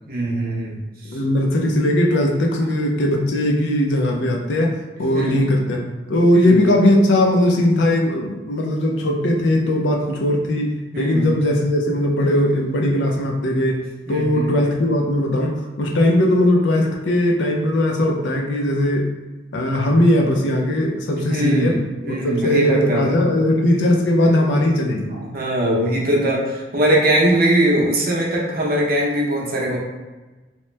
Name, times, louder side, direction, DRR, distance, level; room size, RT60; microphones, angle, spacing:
voice 1, 0.1-0.8 5.1-5.5 6.3-6.6 10.9-11.3 14.1-14.5 21.1-23.2 25.1-29.8, right 1 dB, 55° right, -3 dB, 0.7 m, -21 dB
voice 2, 1.1-5.8 6.1-13.8 14.1-19.1 19.5-21.8 22.0-25.2, left 1 dB, 80° left, 0 dB, 0.5 m, -19 dB
2.9 x 2.0 x 3.2 m, 1.2 s
head